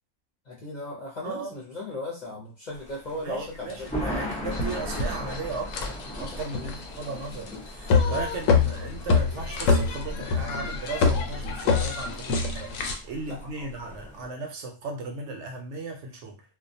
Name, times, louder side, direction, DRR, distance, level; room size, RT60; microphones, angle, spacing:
voice 1, 0.5-4.3 6.5-6.7 13.3-13.7, left 2 dB, 45° left, 0.7 m, -37 dB
voice 2, 1.2-1.6 3.2-16.4, right 3 dB, 70° right, 0.8 m, -36 dB
Thunder, 2.7-14.3, equal, 10° left, 0.3 m, -38 dB
sound 1, 3.7-3.8 4.3-12.9, left 4 dB, 80° left, 0.9 m, -26 dB
2.3 x 2.2 x 2.6 m
omnidirectional pair, 1.3 m